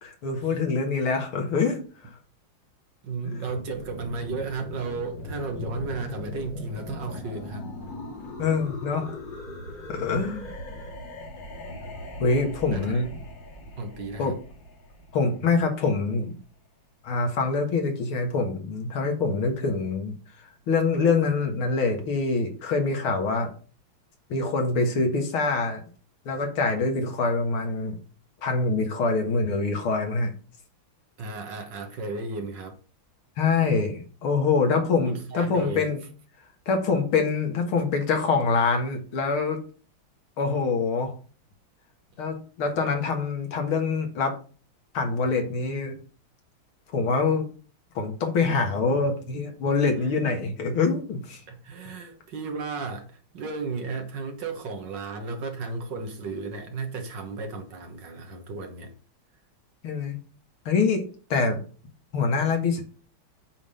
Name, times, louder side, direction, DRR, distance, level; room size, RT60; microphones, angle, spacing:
voice 1, 0.0-2.1 3.2-3.3 8.4-9.1 9.9-10.5 12.2-13.1 14.2-14.3 15.1-16.3 17.0-23.5 24.3-25.8 26.3-28.0 28.4-30.3 33.4-36.0 36.7-39.6 40.4-41.1 42.2-44.4 44.9-46.0 46.9-47.5 48.0-51.4 59.8-60.2 60.7-61.0 61.3-61.6 62.1-62.8, left 4 dB, 90° left, 2.5 m, -25 dB
voice 2, 3.0-7.7 12.7-13.0 13.8-14.4 31.2-32.8 35.1-35.9 51.5-58.9, right 3 dB, 60° right, 1.9 m, -34 dB
sound 1, 3.4-16.1, left 1 dB, 60° left, 2.9 m, -39 dB
8.4 x 3.7 x 6.8 m
omnidirectional pair, 2.2 m